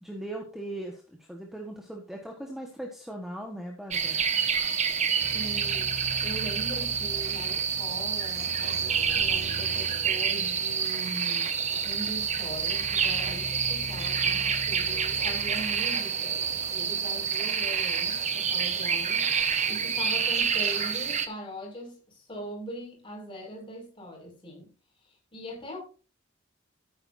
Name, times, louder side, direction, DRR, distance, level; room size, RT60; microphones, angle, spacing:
voice 1, 0.0-4.2, right 1 dB, ahead, 1.4 m, -39 dB
sound 1, 3.9-21.3, right 7 dB, 35° right, 1.1 m, -28 dB
sound 2, 5.2-16.0, left 1 dB, 70° right, 3.2 m, -43 dB
voice 2, 5.3-24.7 25.3-25.8, equal, 25° left, 5.7 m, -41 dB
13.5 x 9.4 x 2.7 m
head